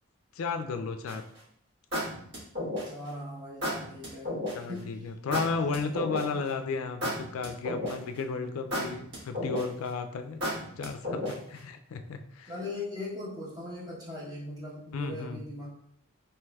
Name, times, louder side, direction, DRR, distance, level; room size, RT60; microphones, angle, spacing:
voice 1, 0.4-1.2 4.5-10.4 10.8-12.5 14.9-15.4, left 4 dB, 75° left, 8 dB, 0.3 m, -34 dB
sound 1, 1.1-1.4 1.9-3.1 3.6-4.5 5.3-6.5 7.0-8.2 8.7-9.9 10.4-11.6, left 1 dB, 55° right, 1.3 m, -32 dB
voice 2, 2.8-4.3 4.7-4.9 5.6-6.4 12.5-15.8, left 2 dB, 20° right, -7 dB, 0.9 m, -40 dB
3.2 x 3.0 x 2.3 m, 0.69 s
head